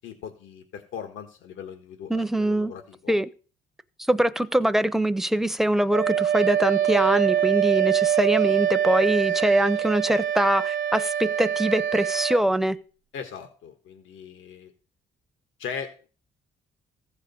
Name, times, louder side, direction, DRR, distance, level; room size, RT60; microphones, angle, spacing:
voice 1, 0.0-3.1 13.1-14.7 15.6-15.9, left 7 dB, 85° left, 5 dB, 1.6 m, -39 dB
voice 2, 2.1-2.7 3.1-3.3 4.1-12.8, right 1 dB, ahead, 12 dB, 0.7 m, -23 dB
Wind instrument woodwind instrument, 5.9-12.4, right 10 dB, 70° right, 0.7 m, -24 dB
14.5 x 5.1 x 6.9 m, 0.38 s
cardioid pair, 90°, 20 cm